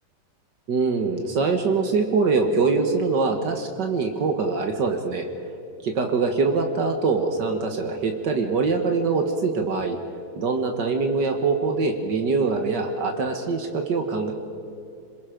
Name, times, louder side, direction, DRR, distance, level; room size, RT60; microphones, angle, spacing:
voice 1, 0.7-5.3 5.8-10.0 10.4-14.3, right 4 dB, 75° right, 4 dB, 2.1 m, -23 dB
27.0 x 21.0 x 5.2 m, 2.6 s
omnidirectional pair, 1.9 m